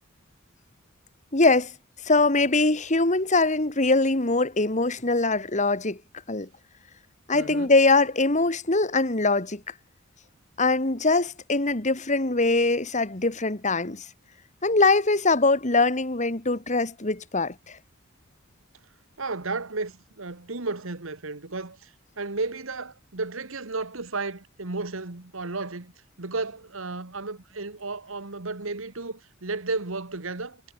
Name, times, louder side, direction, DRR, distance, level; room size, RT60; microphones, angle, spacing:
voice 1, 1.3-1.7 2.0-6.0 6.3-6.5 7.3-9.6 10.6-14.1 14.6-17.8, left 3 dB, 35° left, 2.1 m, -22 dB
voice 2, 7.3-7.7 19.2-25.9 26.2-30.6, right 3 dB, 70° right, 1.7 m, -33 dB
head